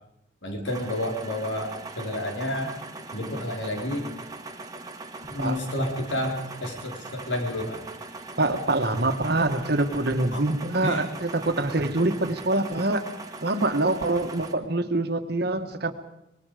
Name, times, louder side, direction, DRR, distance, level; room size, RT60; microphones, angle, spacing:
voice 1, 0.4-2.7 3.1-4.1 5.3-7.8 10.3-10.4 10.8-11.0, left 1 dB, 80° left, 2 dB, 4.5 m, -30 dB
sound 1, 0.7-14.5, right 3 dB, 20° right, 1.6 m, -41 dB
voice 2, 8.4-13.0 13.4-15.9, right 2 dB, 55° right, 8 dB, 1.5 m, -25 dB
25.5 x 21.0 x 5.1 m, 0.86 s
head